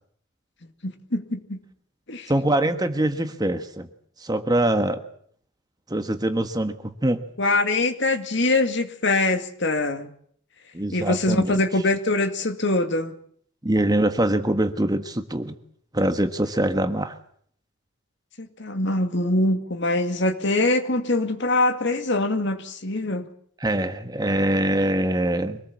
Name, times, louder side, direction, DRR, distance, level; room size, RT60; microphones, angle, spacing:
voice 1, 0.8-1.6 2.1-2.3 7.4-10.1 10.9-13.1 18.4-23.2, left 2 dB, 55° left, 8 dB, 2.3 m, -23 dB
voice 2, 2.3-3.9 4.2-5.0 5.9-7.2 10.7-11.6 13.6-15.6 15.9-17.2 23.6-25.6, right 1 dB, 20° right, 9 dB, 1.3 m, -23 dB
25.0 x 18.5 x 7.4 m, 0.62 s
head